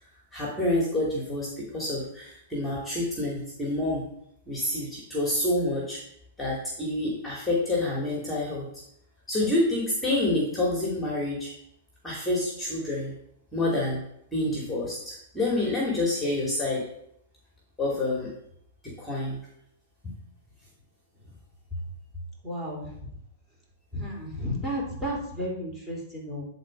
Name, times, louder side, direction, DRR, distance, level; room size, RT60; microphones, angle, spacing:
voice 1, 0.3-4.0 4.5-6.0 6.4-8.7 9.3-11.5 12.0-13.1 13.5-14.0 14.3-16.9 17.8-18.3 18.8-19.4 20.0-20.1, left 1 dB, 5° left, -4 dB, 2.5 m, -28 dB
voice 2, 22.4-22.9 23.9-26.5, equal, 15° right, -3 dB, 3.5 m, -32 dB
10.0 x 4.2 x 5.2 m, 0.74 s
hypercardioid pair, 105°, 0 cm